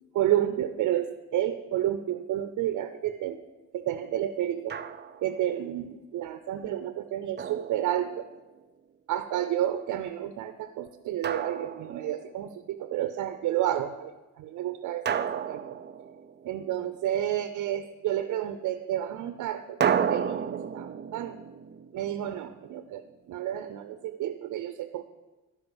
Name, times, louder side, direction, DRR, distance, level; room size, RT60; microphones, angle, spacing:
voice 1, 0.1-3.4 3.7-4.8 5.2-8.3 9.1-15.6 16.4-21.4 21.9-25.0, right 12 dB, 75° right, 10 dB, 0.7 m, -30 dB
Drum, 4.7-5.4 7.4-8.5 11.2-12.4 15.1-16.7 19.8-22.8, right 8 dB, 35° right, 0.5 m, -32 dB
12.0 x 4.7 x 7.1 m, 1.1 s
cardioid pair, 90°, 30 cm